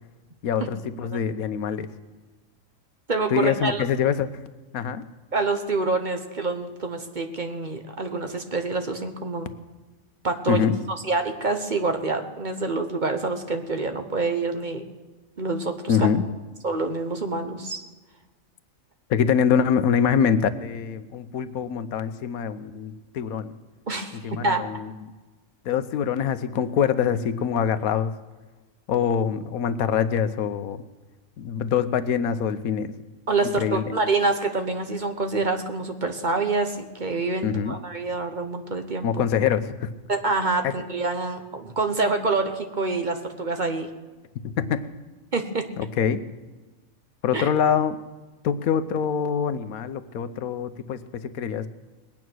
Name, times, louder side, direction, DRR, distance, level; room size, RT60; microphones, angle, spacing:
voice 1, 0.4-1.9 3.3-4.3 4.7-5.0 10.5-10.8 15.9-16.2 19.1-23.5 24.2-25.1 25.6-28.1 28.9-30.8 31.4-32.9 33.6-33.9 37.4-37.8 39.0-39.9 40.6-40.7 44.6-44.9 45.8-46.2 47.2-48.0 48.4-51.0 51.3-51.7, left 7 dB, 85° left, 12 dB, 1.2 m, -24 dB
voice 2, 3.1-3.8 5.3-9.5 10.2-10.6 11.0-14.8 15.4-16.1 16.6-17.8 23.9-24.7 33.3-39.1 40.1-43.9 45.3-45.6 47.3-47.5, right 3 dB, 35° right, 6 dB, 1.0 m, -26 dB
20.5 x 9.1 x 6.2 m, 1.2 s
omnidirectional pair, 1.5 m